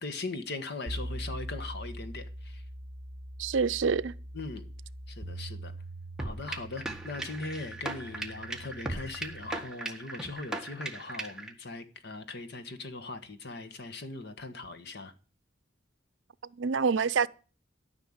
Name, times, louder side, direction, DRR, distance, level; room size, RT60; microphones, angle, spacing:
voice 1, 0.0-2.6 4.3-4.6 5.1-5.7 6.2-15.1, left 3 dB, 60° left, 1.5 m, -40 dB
sound 1, 0.9-9.6, right 1 dB, 55° right, 1.3 m, -42 dB
voice 2, 3.4-4.1 16.6-17.3, right 5 dB, 75° right, 0.6 m, -26 dB
sound 2, 6.2-11.5, right 2 dB, 5° right, 1.7 m, -38 dB
13.5 x 5.9 x 8.7 m
head